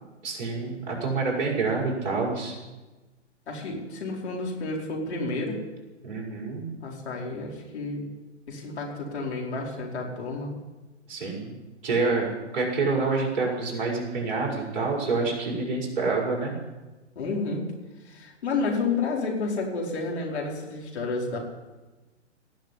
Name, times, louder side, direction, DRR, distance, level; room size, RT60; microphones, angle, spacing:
voice 1, 0.2-2.5 6.0-6.7 11.1-11.6 11.8-16.5, right 3 dB, 50° right, -2 dB, 5.8 m, -27 dB
voice 2, 3.5-5.6 6.8-8.0 8.5-10.5 17.1-17.7 18.0-21.4, left 3 dB, 65° left, -2 dB, 4.9 m, -30 dB
18.0 x 6.7 x 10.0 m, 1.2 s
hypercardioid pair, 125°, 36 cm